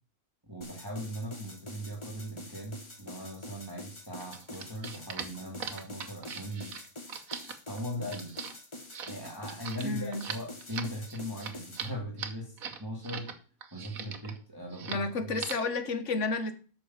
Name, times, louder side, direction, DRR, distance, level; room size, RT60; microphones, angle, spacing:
voice 1, 0.4-6.7 7.7-8.5 9.1-13.3 13.7-15.5, equal, 15° right, -1 dB, 2.2 m, -39 dB
sound 1, 0.6-11.9, left 1 dB, 20° left, 1.5 m, -46 dB
sound 2, 4.2-13.3 13.6-14.4 14.7-15.1 15.3-15.7, right 6 dB, 85° right, 1.6 m, -40 dB
voice 2, 9.8-10.2 14.0-14.1 14.9-16.5, left 3 dB, 60° left, 9 dB, 1.5 m, -31 dB
8.3 x 6.2 x 7.2 m, 0.39 s
omnidirectional pair, 1.4 m